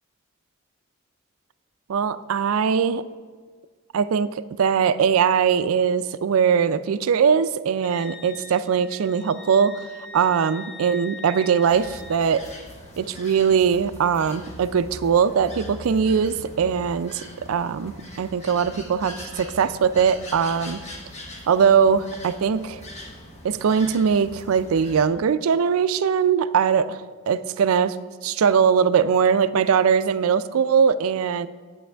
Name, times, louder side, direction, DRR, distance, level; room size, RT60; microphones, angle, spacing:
voice 1, 1.9-3.0 3.9-9.8 10.1-12.5 13.0-20.8 21.5-22.8 23.4-27.0 27.3-28.0 28.2-31.5, right 7 dB, 80° right, 14 dB, 0.4 m, -21 dB
Wind instrument woodwind instrument, 7.8-12.3, left 3 dB, 65° left, 0.7 m, -41 dB
sound 1, 11.6-25.1, left 1 dB, 35° left, 1.1 m, -41 dB
11.0 x 8.1 x 3.4 m, 1.5 s
head